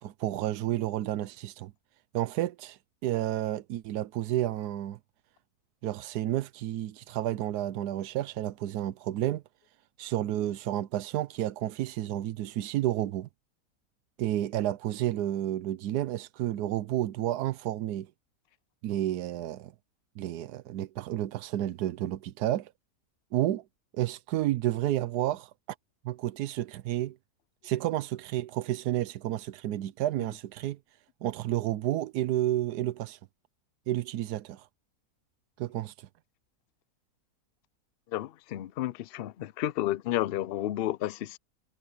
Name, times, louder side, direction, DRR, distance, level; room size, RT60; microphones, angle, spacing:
voice 1, 0.0-1.7 2.1-5.0 5.8-9.4 10.0-13.3 14.2-18.1 18.8-19.7 20.2-22.7 23.3-23.6 23.9-25.5 26.0-27.2 27.6-30.8 31.2-33.2 33.9-34.7 35.6-36.1, right 13 dB, 85° right, 1.2 m, -31 dB
voice 2, 38.1-41.4, left 13 dB, 75° left, 0.5 m, -31 dB
omnidirectional pair, 1.6 m